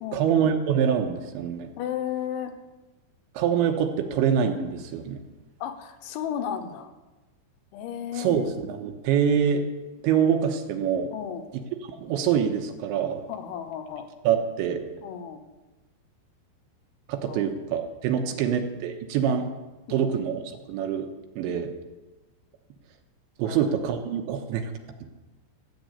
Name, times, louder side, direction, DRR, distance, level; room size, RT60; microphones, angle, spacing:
voice 1, 0.1-1.7 3.3-5.2 8.2-9.6 10.0-11.1 11.5-11.6 12.0-13.3 14.2-14.8 17.1-19.5 19.9-20.4 20.7-21.7 23.4-24.7 25.0-25.1, right 8 dB, 80° right, 5 dB, 3.2 m, -25 dB
voice 2, 1.8-2.5 5.6-6.9 7.7-8.5 11.1-11.5 13.3-14.1 15.0-15.4 17.3-17.5 18.2-18.4 19.9-20.1 21.5-21.7 23.4-23.7, left 9 dB, 80° left, 7 dB, 3.4 m, -34 dB
14.0 x 9.3 x 8.1 m, 1.1 s
omnidirectional pair, 5.6 m